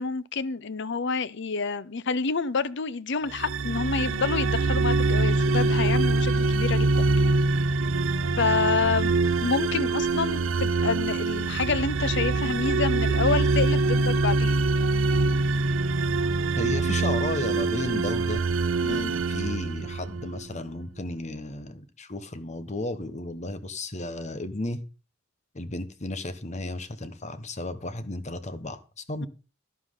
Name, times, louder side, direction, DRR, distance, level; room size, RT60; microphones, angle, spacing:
voice 1, 0.0-7.1 8.4-14.6 18.8-19.1, left 4 dB, 60° left, 0.8 m, -28 dB
sound 1, 3.3-20.4, right 3 dB, 75° right, 0.7 m, -24 dB
voice 2, 16.6-18.4 18.8-24.8 25.5-29.3, left 2 dB, 35° left, 1.2 m, -34 dB
12.0 x 11.5 x 3.8 m
head